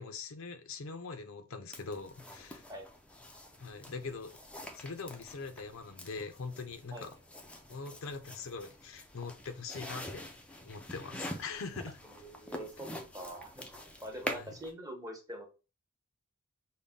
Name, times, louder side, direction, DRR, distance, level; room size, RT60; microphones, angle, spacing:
voice 1, 0.0-2.6 3.6-4.4 4.8-7.2 7.7-10.2 10.6-12.0 14.3-14.5, left 4 dB, 65° left, 0.5 m, -42 dB
sound 1, 1.7-14.7, left 1 dB, 5° left, 0.4 m, -46 dB
voice 2, 12.1-12.9 13.1-13.6 14.0-15.5, equal, 15° right, 0.9 m, -44 dB
5.3 x 2.1 x 3.6 m
head